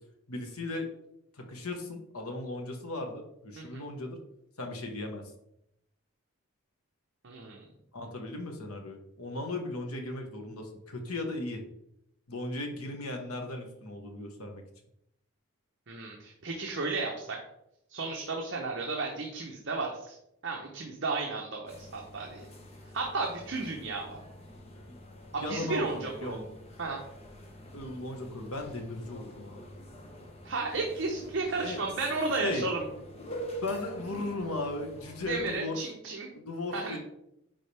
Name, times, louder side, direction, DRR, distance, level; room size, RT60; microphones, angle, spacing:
voice 1, 0.3-0.9 1.4-4.2 4.6-5.2 7.9-11.6 12.3-14.6 24.9-25.0 25.3-26.5 27.7-29.6 31.6-31.8 32.4-32.6 33.5-35.8 36.3-37.0, left 2 dB, 85° left, 3 dB, 1.4 m, -37 dB
voice 2, 7.2-7.6 15.9-17.4 17.9-20.2 20.4-22.4 22.9-24.2 25.3-26.4 26.8-27.0 30.4-32.8 35.3-36.3 36.7-37.0, right 3 dB, 55° right, 0 dB, 0.9 m, -33 dB
sound 1, 21.7-35.6, equal, 30° left, 0.9 m, -46 dB
9.9 x 3.8 x 3.4 m, 0.80 s
head